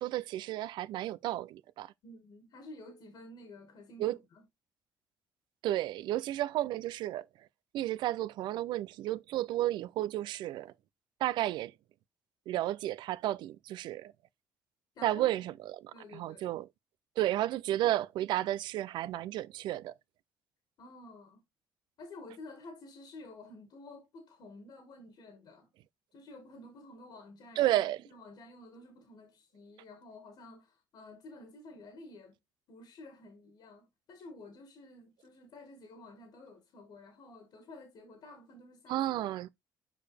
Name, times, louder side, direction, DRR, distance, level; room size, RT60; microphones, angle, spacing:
voice 1, 0.0-1.9 4.0-4.2 5.6-7.2 7.7-10.7 11.2-11.7 12.5-14.1 15.0-16.7 17.2-19.9 27.6-28.0 38.9-39.5, right 14 dB, 75° right, 0.4 m, -32 dB
voice 2, 2.0-4.5 15.0-15.3 15.9-16.6 20.8-21.4 22.0-25.7 26.1-32.4 32.7-39.3, left 2 dB, 70° left, 2.0 m, -51 dB
6.7 x 4.9 x 3.4 m
cardioid pair, 80°, 8 cm